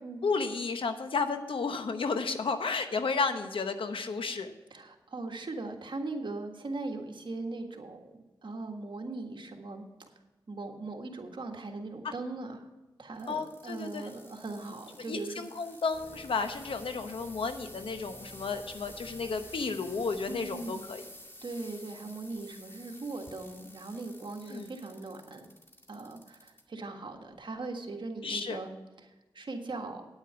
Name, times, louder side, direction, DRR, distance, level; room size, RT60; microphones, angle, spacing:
voice 1, 0.2-4.5 13.3-14.1 15.1-21.0 24.5-24.7 28.2-28.6, left 4 dB, 85° left, 8 dB, 1.0 m, -32 dB
voice 2, 4.7-9.8 10.5-12.7 13.0-15.5 20.3-20.9 21.4-25.5 25.9-30.0, right 3 dB, 65° right, 3 dB, 1.7 m, -40 dB
sound 1, 13.1-26.6 27.1-27.6 28.3-28.4, left 1 dB, 25° left, 2.1 m, -51 dB
sound 2, 15.9-21.4, right 1 dB, 30° right, 3.0 m, -53 dB
9.3 x 8.9 x 5.7 m, 1.1 s
cardioid pair, 50°, 9 cm